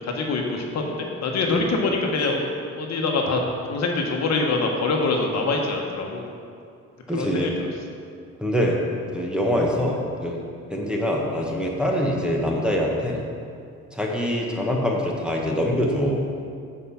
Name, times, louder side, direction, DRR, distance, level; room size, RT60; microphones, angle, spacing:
voice 1, 0.1-2.4 2.8-3.4 3.7-6.2 7.1-7.5, left 3 dB, 60° left, 1 dB, 1.1 m, -24 dB
voice 2, 7.1-7.5 8.4-8.8 9.1-10.4 10.7-13.2 13.9-16.2, equal, 5° right, -2 dB, 1.2 m, -24 dB
8.0 x 4.9 x 5.7 m, 2.3 s
cardioid pair, 90°, 30 cm